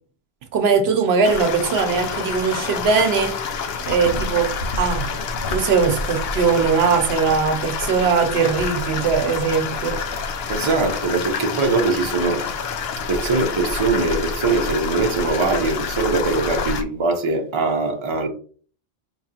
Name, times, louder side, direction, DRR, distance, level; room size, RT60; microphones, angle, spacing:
voice 1, 0.5-3.4 3.9-4.5 4.8-5.1 5.5-10.0, right 5 dB, 75° right, 0.9 m, -20 dB
sound 1, 1.2-16.8, left 5 dB, 75° left, 0.8 m, -27 dB
voice 2, 10.5-12.4 13.1-18.3, right 3 dB, 30° right, 0.7 m, -21 dB
4.9 x 3.0 x 2.8 m
omnidirectional pair, 1.1 m